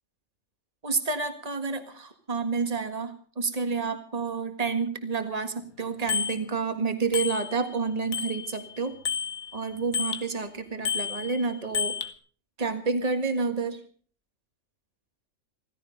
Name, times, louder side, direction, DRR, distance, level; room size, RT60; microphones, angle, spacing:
voice 1, 0.8-8.9 9.5-11.9 12.6-13.8, right 4 dB, 30° right, 8 dB, 1.8 m, -29 dB
Bicycle bell, 6.1-6.4 7.1-7.8 8.1-10.3 10.8-12.1, left 6 dB, 75° left, 1.6 m, -31 dB
16.5 x 15.5 x 5.3 m, 0.43 s
omnidirectional pair, 1.4 m